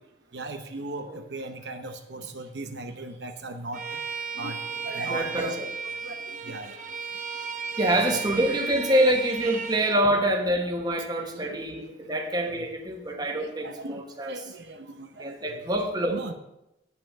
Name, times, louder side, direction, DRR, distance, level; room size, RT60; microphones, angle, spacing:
voice 1, 0.3-3.8 4.4-6.7 7.9-8.1 11.3-11.9 12.3-12.6 13.4-15.8 16.1-16.3, right 2 dB, 75° right, 6 dB, 0.8 m, -38 dB
Bowed string instrument, 3.7-10.0, right 5 dB, 45° right, 0.9 m, -35 dB
voice 2, 5.1-5.7 7.8-14.4 15.2-16.3, right 1 dB, 25° right, 3 dB, 1.3 m, -26 dB
9.2 x 5.7 x 7.5 m, 0.87 s
head